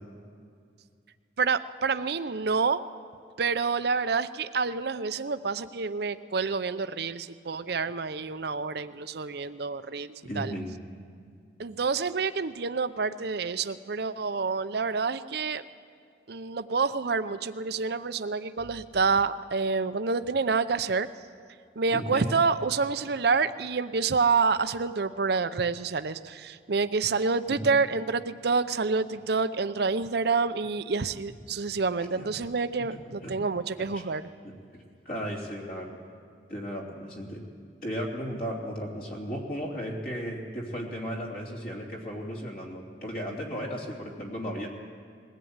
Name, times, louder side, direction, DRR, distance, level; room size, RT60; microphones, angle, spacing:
voice 1, 1.4-2.8 3.4-10.6 11.6-15.6 16.3-21.1 21.8-34.2, right 4 dB, 60° right, 11 dB, 0.6 m, -28 dB
voice 2, 10.2-10.7 21.9-22.3 27.5-27.7 32.1-32.3 32.9-33.3 33.9-34.0 34.7-36.0 36.5-37.4 37.8-44.7, equal, 50° left, -1 dB, 3.0 m, -35 dB
21.0 x 16.5 x 8.8 m, 2.3 s
head